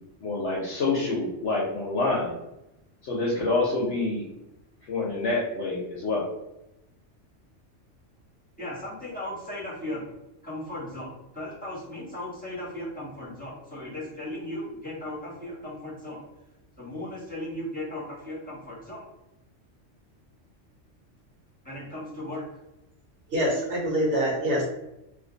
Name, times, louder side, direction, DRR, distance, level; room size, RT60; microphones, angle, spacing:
voice 1, 0.2-2.3 3.0-4.2 4.9-6.3, left 2 dB, 65° left, -5 dB, 1.0 m, -27 dB
voice 2, 8.6-10.0 10.4-11.1 11.3-16.2 16.8-19.0 21.6-22.4, left 1 dB, 5° left, -8 dB, 1.2 m, -36 dB
voice 3, 23.3-24.7, equal, 65° right, -4 dB, 1.4 m, -25 dB
2.7 x 2.6 x 3.8 m, 0.90 s
omnidirectional pair, 1.3 m